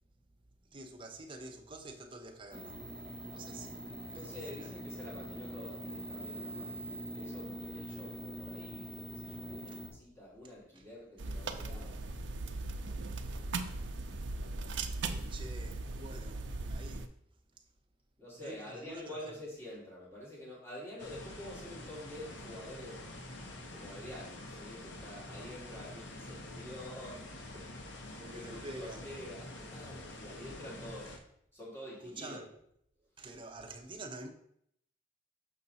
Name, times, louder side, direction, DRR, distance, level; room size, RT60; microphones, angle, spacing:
voice 1, 0.6-2.8 3.3-4.7 9.7-9.8 10.7-10.8 15.3-17.1 18.4-19.4 28.2-29.0 32.0-32.5 33.0-34.3, right 2 dB, 30° right, 0.8 m, -48 dB
sound 1, 2.5-9.9, right 1 dB, 35° left, 1.9 m, -43 dB
voice 2, 4.0-6.9 7.1-12.0 13.0-13.1 15.1-15.5 18.2-23.1 23.7-27.7 28.0-31.2 31.5-32.4, left 1 dB, 15° left, 2.6 m, -48 dB
sound 2, 11.2-17.1, right 3 dB, 80° right, 0.6 m, -38 dB
sound 3, 21.0-31.2, left 1 dB, 80° left, 1.0 m, -47 dB
6.5 x 5.3 x 4.1 m
head